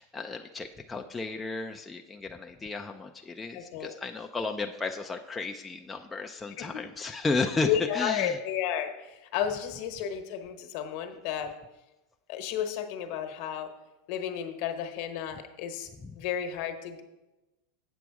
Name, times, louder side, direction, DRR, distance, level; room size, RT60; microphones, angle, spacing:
voice 1, 0.0-8.4 16.0-16.1, left 3 dB, 15° left, 3 dB, 0.4 m, -33 dB
voice 2, 3.5-4.0 6.6-6.8 7.7-11.6 12.3-13.7 14.1-15.9 16.2-17.0, left 9 dB, 60° left, 6 dB, 1.1 m, -32 dB
8.1 x 6.0 x 4.8 m, 1.0 s
supercardioid pair, 130°, 0 cm